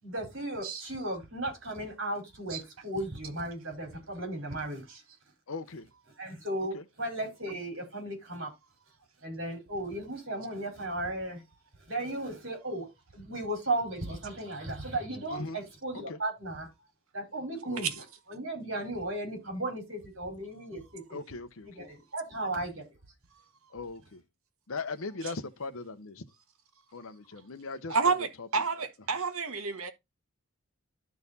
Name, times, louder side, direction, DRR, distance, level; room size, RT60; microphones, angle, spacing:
voice 1, 0.0-5.0 6.2-8.5 9.2-11.4 11.9-12.9 13.1-16.7 17.1-17.9 18.3-21.2 21.7-22.8, right 1 dB, 60° right, 4.6 m, -35 dB
voice 2, 5.5-5.9 6.7-6.8 15.3-15.6 16.1-16.2 17.6-17.9 21.1-21.7 23.7-24.2 24.7-26.2 26.9-28.1 28.4-28.5, left 3 dB, 75° left, 0.8 m, -39 dB
voice 3, 27.9-29.9, right 5 dB, 80° right, 1.4 m, -30 dB
12.0 x 4.0 x 4.1 m
head